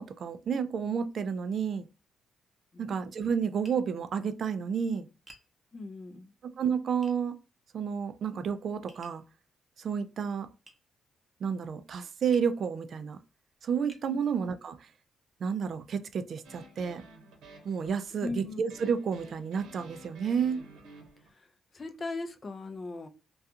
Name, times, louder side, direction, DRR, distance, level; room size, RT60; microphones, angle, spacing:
voice 1, 0.0-1.9 2.8-5.1 6.6-7.4 7.7-9.2 9.8-10.5 11.4-13.2 13.6-14.9 15.4-17.0 17.6-20.6, right 6 dB, 55° right, 0.4 m, -31 dB
Tap, 3.6-3.8 5.3-5.5 7.0-7.2 8.9-9.2 10.7-10.8 12.3-12.6 13.3-13.4 13.9-14.1, equal, 5° right, 0.7 m, -53 dB
voice 2, 5.7-6.3 18.2-18.6 21.2-21.5 21.7-23.1, left 3 dB, 35° left, 0.5 m, -38 dB
sound 1, 16.4-21.3, right 2 dB, 85° right, 0.9 m, -52 dB
2.4 x 2.3 x 2.7 m
cardioid pair, 90°, 0 cm